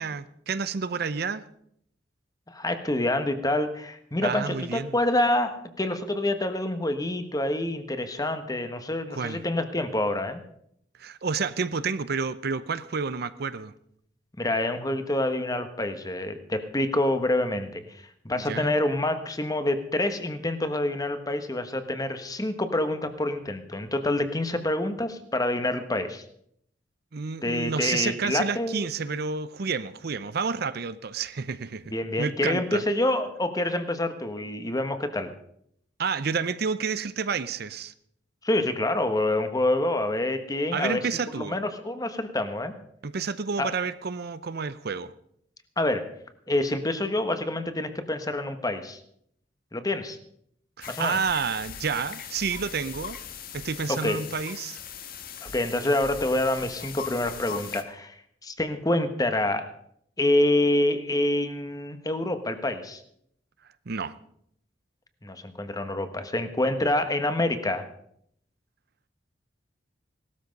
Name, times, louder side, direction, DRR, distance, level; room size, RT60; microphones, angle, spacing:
voice 1, 0.0-1.4 4.2-5.0 9.1-9.4 11.0-13.7 18.3-18.7 27.1-31.9 32.2-32.8 36.0-37.9 40.7-41.6 43.0-45.1 50.8-53.2 53.5-54.8 63.9-64.1, right 5 dB, 55° right, 14 dB, 0.6 m, -30 dB
voice 2, 2.5-10.4 14.4-26.2 27.4-28.8 31.9-35.3 38.4-41.0 41.3-42.7 43.6-43.7 45.8-46.1 46.5-49.0 49.7-50.2 50.9-51.2 53.9-54.2 55.4-59.7 60.2-63.0 65.2-67.8, left 1 dB, 20° left, 9 dB, 1.3 m, -27 dB
sound 1, 50.8-57.8, left 7 dB, 55° left, 1.4 m, -40 dB
17.5 x 13.0 x 5.3 m, 0.70 s
head